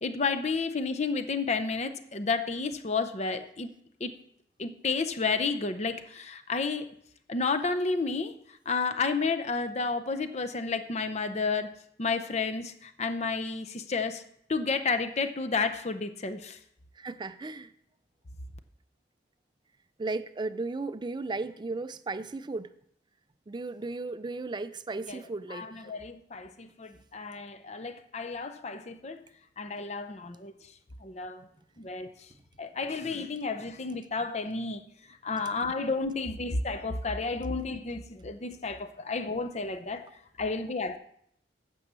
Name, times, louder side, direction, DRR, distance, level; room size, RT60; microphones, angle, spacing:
voice 1, 0.0-3.7 4.0-4.1 4.6-6.9 7.3-8.3 8.7-14.2 14.5-16.6 25.1-25.2 25.5-29.2 29.6-30.5 31.0-31.5 31.8-32.1 32.6-34.8 35.2-40.1 40.4-41.0, left 4 dB, 35° left, 0.7 m, -31 dB
voice 2, 17.0-17.7 20.0-22.7 23.5-25.9, right 3 dB, 25° right, 0.4 m, -35 dB
9.2 x 6.2 x 6.8 m
head